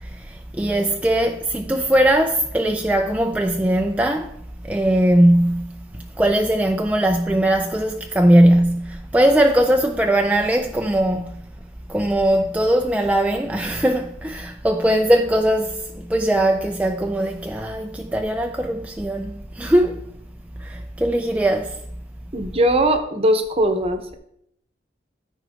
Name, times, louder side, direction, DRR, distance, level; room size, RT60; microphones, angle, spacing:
voice 1, 0.0-4.3 4.6-11.4 11.9-20.0 20.6-21.8, right 1 dB, 10° right, 0.4 m, -20 dB
voice 2, 22.3-24.2, right 1 dB, 35° right, 0.9 m, -20 dB
14.0 x 4.6 x 3.5 m
head